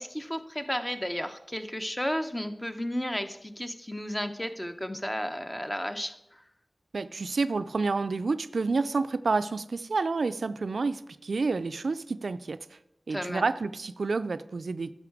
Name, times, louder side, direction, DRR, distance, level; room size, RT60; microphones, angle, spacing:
voice 1, 0.0-6.4 13.1-13.5, equal, 15° left, 8 dB, 0.8 m, -33 dB
voice 2, 6.9-12.6 13.1-14.9, right 4 dB, 85° right, 13 dB, 0.3 m, -29 dB
10.5 x 6.4 x 4.7 m, 0.85 s
cardioid pair, 40°, 0 cm